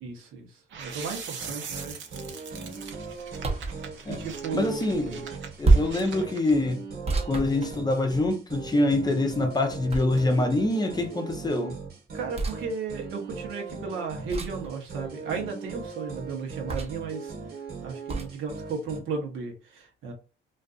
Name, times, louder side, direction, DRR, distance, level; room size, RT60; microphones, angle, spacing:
voice 1, 0.0-2.0 4.1-4.8 12.1-17.3 17.8-20.1, right 5 dB, 90° right, 0.9 m, -34 dB
sound 1, 0.7-6.5, right 6 dB, 70° right, 0.6 m, -42 dB
sound 2, 1.4-19.0, right 4 dB, 55° right, 1.1 m, -40 dB
sound 3, 3.4-3.8 5.6-6.1 7.1-8.2 9.9-10.5 12.3-12.6 14.3-14.7 16.7-17.1 18.1-18.3, right 3 dB, 30° right, 0.7 m, -26 dB
voice 2, 4.5-5.2 5.6-6.8 7.3-11.8, left 2 dB, 20° left, 0.6 m, -25 dB
2.5 x 2.4 x 2.4 m
cardioid pair, 90°, 20 cm